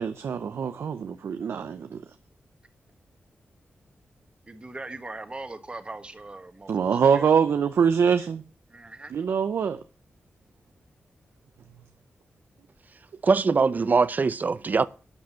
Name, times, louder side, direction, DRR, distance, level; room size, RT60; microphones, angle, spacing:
voice 1, 0.0-2.0 6.7-8.4 9.1-9.8, right 6 dB, 75° right, 0.7 m, -24 dB
voice 2, 4.5-7.3 8.7-9.1, right 2 dB, 25° right, 1.5 m, -40 dB
voice 3, 13.2-14.9, right 4 dB, 40° right, 0.6 m, -22 dB
12.0 x 5.2 x 8.3 m
wide cardioid pair, 110°, 4 cm